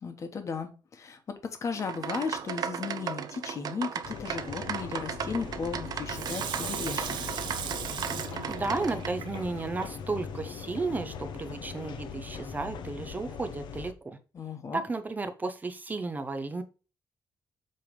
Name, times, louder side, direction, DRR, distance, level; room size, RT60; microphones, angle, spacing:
voice 1, 0.0-7.2 14.3-14.8, left 5 dB, 40° left, 1.3 m, -35 dB
sound 1, 1.7-9.1, right 7 dB, 60° right, 0.6 m, -36 dB
sound 2, 4.0-13.9, left 6 dB, 85° left, 0.8 m, -40 dB
Water tap faucet / Sink (filling or washing), 6.1-9.9 10.4-10.5, right 8 dB, 85° right, 1.0 m, -38 dB
voice 2, 8.5-14.2 14.7-16.6, right 3 dB, 20° right, 0.7 m, -33 dB
7.7 x 3.4 x 5.1 m
wide cardioid pair, 165°, 8 cm